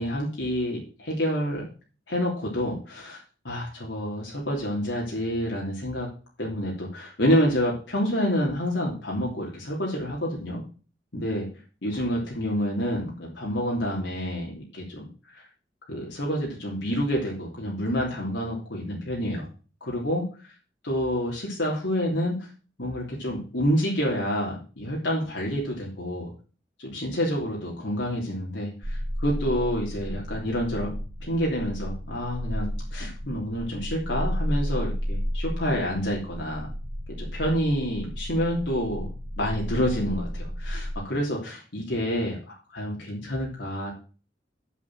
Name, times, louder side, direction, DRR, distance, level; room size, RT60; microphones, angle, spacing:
voice 1, 0.0-1.7 2.1-6.1 6.4-10.6 11.1-11.5 11.8-15.1 15.3-15.4 15.9-19.5 19.8-20.2 20.8-22.5 22.8-26.3 26.8-30.9 31.2-36.7 37.2-39.1 39.4-43.9, equal, 80° left, -3 dB, 3.1 m, -28 dB
sound 1, 28.8-40.9, equal, 90° right, 1.4 m, -33 dB
8.1 x 6.8 x 7.6 m, 0.37 s
head